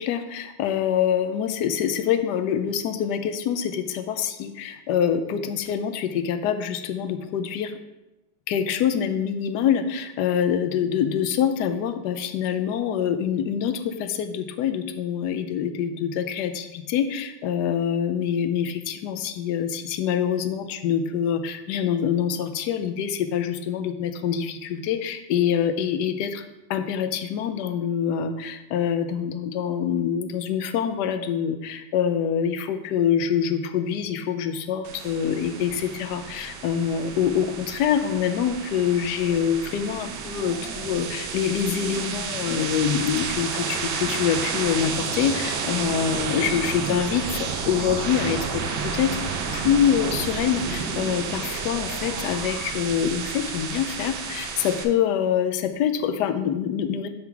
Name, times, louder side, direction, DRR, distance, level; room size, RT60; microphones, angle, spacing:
voice 1, 0.0-7.7 8.5-26.4 26.7-49.2 49.5-57.1, left 8 dB, 70° left, 9 dB, 1.1 m, -25 dB
sound 1, 34.8-54.8, right 5 dB, 80° right, 1.6 m, -31 dB
10.5 x 4.6 x 3.8 m, 1.0 s
omnidirectional pair, 2.1 m